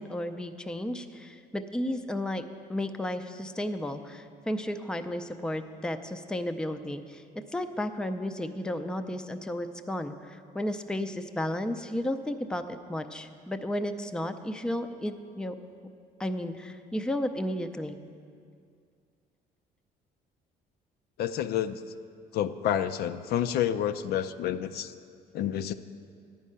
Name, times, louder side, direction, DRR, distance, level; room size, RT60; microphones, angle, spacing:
voice 1, 0.0-2.4 2.7-7.2 7.5-15.5 16.2-18.0, left 1 dB, 5° left, 8 dB, 0.4 m, -33 dB
voice 2, 21.2-21.8 22.3-24.9 25.3-25.7, left 10 dB, 70° left, 10 dB, 0.4 m, -29 dB
10.5 x 5.5 x 8.5 m, 2.3 s
cardioid pair, 110°, 17 cm